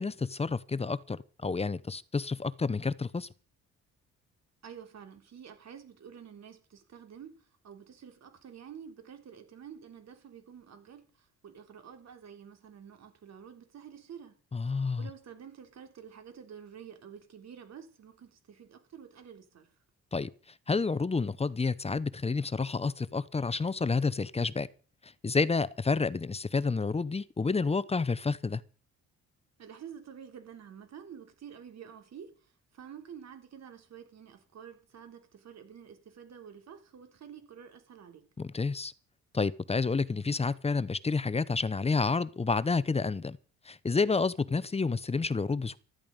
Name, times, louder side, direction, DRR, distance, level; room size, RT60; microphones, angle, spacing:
voice 1, 0.0-3.3 14.5-15.1 20.1-20.3 20.7-24.7 25.2-28.6 38.4-38.9 39.3-43.4 43.7-45.8, left 4 dB, 20° left, 0.8 m, -29 dB
voice 2, 4.6-14.4 14.7-19.7 29.6-38.2, right 8 dB, 60° right, 3.6 m, -49 dB
14.5 x 13.0 x 5.3 m
cardioid pair, 90°, 30 cm